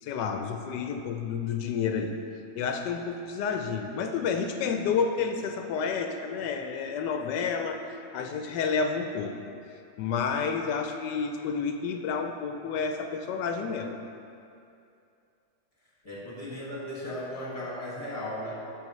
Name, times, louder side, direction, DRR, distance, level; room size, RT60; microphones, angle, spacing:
voice 1, 0.0-2.2 2.5-7.8 8.1-9.3 10.0-14.0, left 5 dB, 90° left, 5 dB, 1.2 m, -30 dB
voice 2, 16.0-18.5, left 1 dB, 20° left, -6 dB, 1.8 m, -36 dB
10.5 x 6.9 x 3.1 m, 2.6 s
omnidirectional pair, 1.8 m